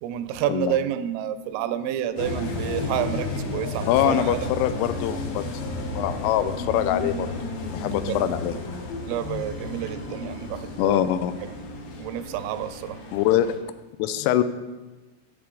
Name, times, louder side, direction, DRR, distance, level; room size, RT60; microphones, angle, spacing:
voice 1, 0.0-4.5 8.0-8.2 9.1-11.1 11.4-11.5 12.0-13.0, right 11 dB, 85° right, 11 dB, 3.1 m, -29 dB
sound 1, 2.2-13.5, left 3 dB, 70° left, 3.6 m, -33 dB
voice 2, 3.9-5.5 5.9-7.3 7.7-8.6 10.8-11.3 13.1-13.5 14.0-14.4, left 11 dB, 85° left, 12 dB, 3.1 m, -23 dB
sound 2, 4.9-13.1, right 4 dB, 10° right, 0.8 m, -48 dB
14.0 x 6.9 x 3.8 m, 1.2 s
omnidirectional pair, 5.8 m